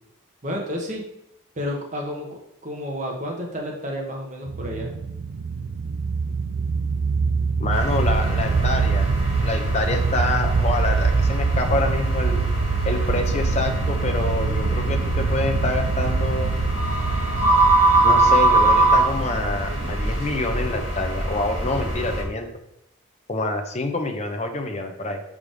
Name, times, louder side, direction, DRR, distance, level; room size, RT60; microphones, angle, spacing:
voice 1, 0.4-1.0 1.5-2.3 2.6-4.9, equal, 35° right, 0 dB, 1.4 m, -30 dB
sound 1, 4.5-21.5, right 5 dB, 85° right, 0.6 m, -25 dB
voice 2, 7.6-9.1 9.4-12.4 12.8-16.6 18.0-22.5 23.3-25.2, left 2 dB, 30° left, 4 dB, 0.8 m, -27 dB
sound 2, 7.7-22.2, right 2 dB, 60° right, 2.2 m, -23 dB
5.4 x 4.9 x 5.2 m, 0.82 s
head